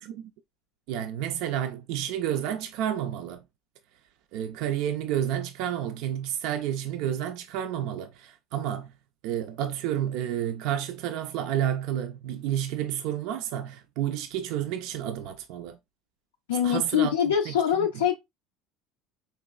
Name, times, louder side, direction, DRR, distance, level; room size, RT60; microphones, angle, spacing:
voice 1, 0.9-3.4 4.3-8.9 9.2-15.8 16.6-17.9, right 10 dB, 60° right, 0.3 m, -30 dB
voice 2, 16.5-18.2, left 9 dB, 75° left, 0.4 m, -24 dB
4.3 x 2.9 x 2.3 m
figure-of-eight pair, 65°, 0 cm